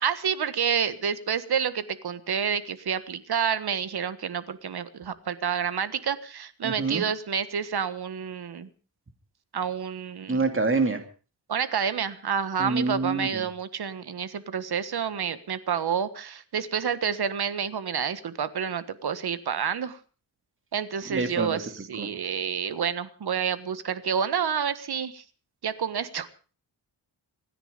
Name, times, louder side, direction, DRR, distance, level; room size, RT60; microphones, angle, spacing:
voice 1, 0.0-8.7 9.5-10.4 11.5-20.0 20.7-25.2 25.6-26.3, right 7 dB, 65° right, 13 dB, 1.5 m, -29 dB
voice 2, 6.6-7.0 10.3-11.0 12.6-13.5 21.1-21.6 22.0-22.1, right 3 dB, 30° right, 6 dB, 2.8 m, -26 dB
26.5 x 10.0 x 5.2 m, 0.38 s
wide cardioid pair, 130°, 41 cm